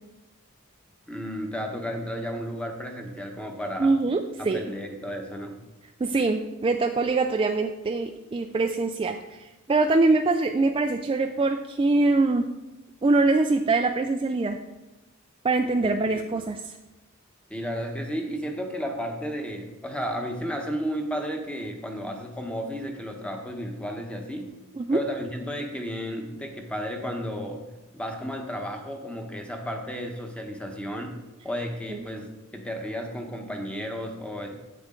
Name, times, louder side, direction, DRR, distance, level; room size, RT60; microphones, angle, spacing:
voice 1, 1.1-4.0 4.4-5.6 15.8-16.4 17.5-24.5 24.9-27.7 27.9-34.5, equal, 5° left, 3 dB, 1.0 m, -33 dB
voice 2, 3.8-4.6 6.0-12.5 13.0-14.6 15.4-16.7 24.8-25.0 31.9-32.0, right 3 dB, 25° right, 5 dB, 0.3 m, -23 dB
8.5 x 8.0 x 3.7 m, 1.0 s
head